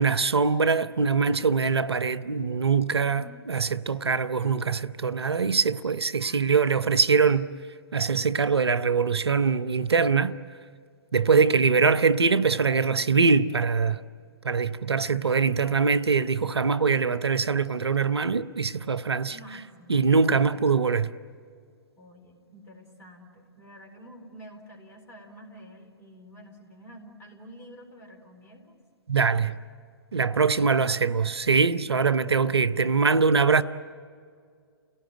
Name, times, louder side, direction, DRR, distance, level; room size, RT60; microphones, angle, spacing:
voice 1, 0.0-7.5 7.9-10.4 11.1-14.0 14.4-19.4 19.9-21.1 29.1-29.6 30.1-33.6, right 5 dB, 80° right, 0.7 m, -23 dB
voice 2, 2.9-3.5 6.2-7.0 19.3-20.8 22.0-28.8, equal, 20° left, 4.5 m, -49 dB
29.5 x 18.0 x 9.2 m
figure-of-eight pair, 120°, 13 cm